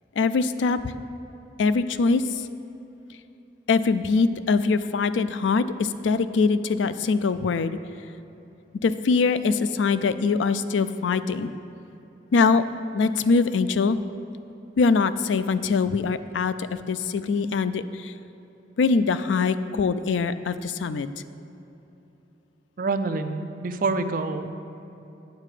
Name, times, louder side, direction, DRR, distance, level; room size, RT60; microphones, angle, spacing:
voice 1, 0.2-0.8 1.6-2.5 3.7-7.8 8.8-11.5 12.3-12.6 12.9-14.0 14.8-18.1 18.8-21.1, left 4 dB, 85° left, 13 dB, 0.4 m, -23 dB
voice 2, 22.8-24.5, right 3 dB, 50° right, 8 dB, 0.5 m, -27 dB
9.4 x 7.5 x 4.9 m, 3.0 s
head